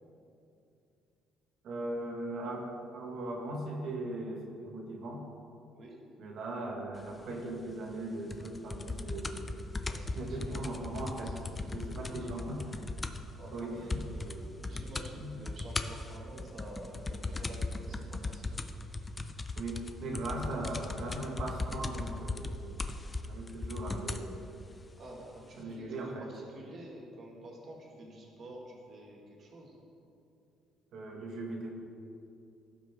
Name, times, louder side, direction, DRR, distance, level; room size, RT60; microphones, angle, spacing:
voice 1, 1.6-5.2 6.2-9.5 10.1-11.4 11.7-12.7 13.5-14.0 14.7-14.8 15.1-15.3 19.6-22.8 23.3-24.4 25.6-26.3 30.9-31.7, right 2 dB, 60° right, 0 dB, 1.7 m, -39 dB
sound 1, 8.3-13.3 13.6-13.7 13.9-14.4 14.6-15.1 15.5-24.3 25.1-25.2, left 3 dB, 20° left, 0.5 m, -37 dB
voice 2, 9.9-12.5 13.4-18.6 25.0-29.7, right 1 dB, 45° right, -2 dB, 2.0 m, -49 dB
16.5 x 6.0 x 3.7 m, 2.7 s
cardioid pair, 135°, 0 cm